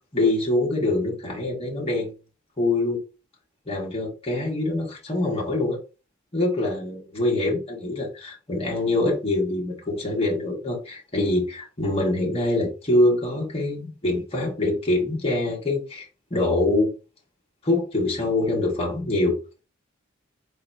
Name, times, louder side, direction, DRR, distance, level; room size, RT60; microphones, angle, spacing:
voice 1, 0.1-2.1 2.6-3.0 3.6-5.8 6.3-16.9 17.6-19.6, left 2 dB, 30° left, 1.5 m, -24 dB
4.5 x 4.0 x 2.7 m
head